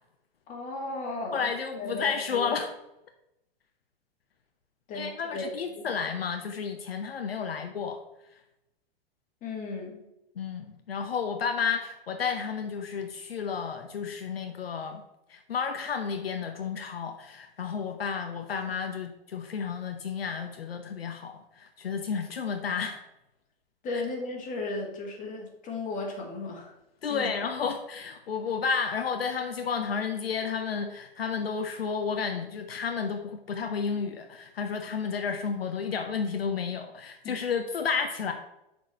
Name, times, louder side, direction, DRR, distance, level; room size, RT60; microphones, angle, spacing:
voice 1, 0.5-2.6 4.9-5.9 9.4-10.1 23.8-26.7 27.1-27.3 37.2-37.3, left 2 dB, 25° left, -1 dB, 2.3 m, -35 dB
voice 2, 1.3-2.7 4.9-8.0 10.4-15.0 15.3-23.0 23.9-24.0 27.0-38.3, left 6 dB, 75° left, 5 dB, 0.9 m, -31 dB
6.2 x 4.8 x 6.7 m, 0.89 s
figure-of-eight pair, 105°, 30 cm